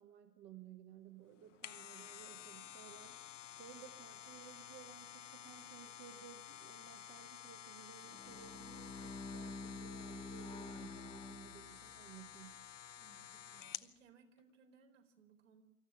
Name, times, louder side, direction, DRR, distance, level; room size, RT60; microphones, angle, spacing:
voice 1, 0.0-12.7, right 10 dB, 35° right, 5 dB, 1.7 m, -57 dB
sound 1, 1.3-13.9 14.4-14.5, left 10 dB, 65° left, 0.9 m, -52 dB
Bowed string instrument, 8.0-12.1, left 2 dB, 10° left, 1.5 m, -48 dB
voice 2, 13.0-15.6, right 5 dB, 65° right, 2 dB, 4.4 m, -66 dB
25.0 x 14.5 x 9.0 m, 0.88 s
figure-of-eight pair, 95°, 40 cm